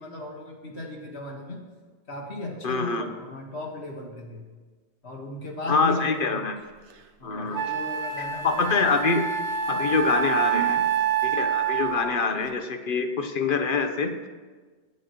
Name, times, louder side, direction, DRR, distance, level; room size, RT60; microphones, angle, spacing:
voice 1, 0.0-1.6 2.1-4.4 5.0-6.4 7.2-8.7 10.5-10.7, left 1 dB, 70° left, 1 dB, 1.8 m, -36 dB
voice 2, 2.6-3.0 5.7-6.6 7.2-7.7 8.4-9.2 9.7-10.8 11.2-14.3, left 4 dB, 50° left, 7 dB, 1.0 m, -25 dB
Wind instrument woodwind instrument, 6.9-7.0 7.5-12.2, right 7 dB, 90° right, 1.2 m, -27 dB
22.5 x 8.0 x 3.0 m, 1.4 s
omnidirectional pair, 1.1 m